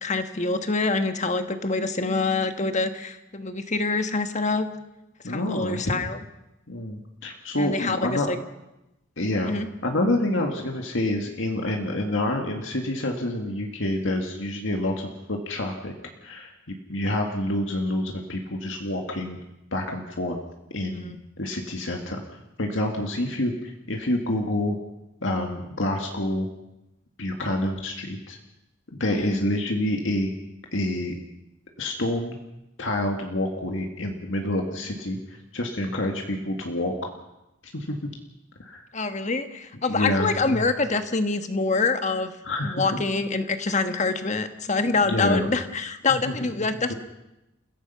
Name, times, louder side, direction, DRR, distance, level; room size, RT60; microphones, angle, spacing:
voice 1, 0.0-4.7 5.2-6.2 7.6-8.4 9.5-9.7 20.9-21.2 29.1-29.4 38.9-42.3 42.6-46.9, left 3 dB, 35° left, 8 dB, 1.5 m, -26 dB
voice 2, 5.2-6.1 6.7-8.3 9.2-9.5 9.8-15.9 16.2-19.4 19.7-20.4 20.7-22.2 22.6-24.8 25.2-26.5 27.2-28.4 28.9-30.3 30.7-31.1 31.8-32.4 32.8-35.2 35.5-37.1 37.7-38.0 38.6-38.8 39.9-40.6 42.4-43.0 44.9-45.5 46.1-46.3 46.9-47.0, left 1 dB, 75° left, 2 dB, 2.0 m, -27 dB
29.5 x 16.0 x 5.8 m, 0.92 s
head